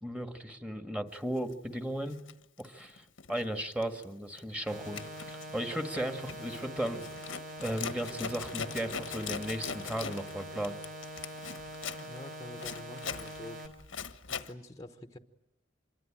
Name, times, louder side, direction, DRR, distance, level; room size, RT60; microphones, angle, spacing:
voice 1, 0.0-2.2 2.6-5.0 5.3-7.0 7.6-10.8, right 1 dB, 5° right, 6 dB, 1.8 m, -36 dB
Zipper (clothing), 1.4-1.5 2.1-3.5 3.7-4.0 4.4-14.5, left 6 dB, 85° left, 1.4 m, -41 dB
sound 1, 4.7-13.7, right 1 dB, 45° right, 3.9 m, -44 dB
voice 2, 12.0-13.6 14.3-15.2, left 1 dB, 20° left, 7 dB, 1.1 m, -47 dB
26.5 x 22.5 x 9.0 m, 0.87 s
head